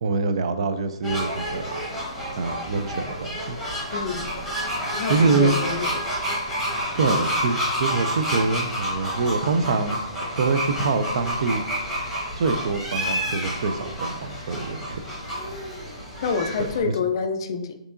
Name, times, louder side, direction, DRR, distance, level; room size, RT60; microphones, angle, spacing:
voice 1, 0.0-1.7 2.4-3.6 5.1-5.6 6.9-10.0 10.4-11.6 12.4-15.0 16.8-16.9, right 4 dB, 55° right, 9 dB, 0.4 m, -25 dB
sound 1, 1.0-16.8, equal, ahead, 1.1 m, -29 dB
voice 2, 3.9-4.3 4.9-6.2 16.2-17.8, left 5 dB, 45° left, 6 dB, 0.4 m, -27 dB
4.6 x 2.9 x 2.5 m, 0.82 s
hypercardioid pair, 160°, 3 cm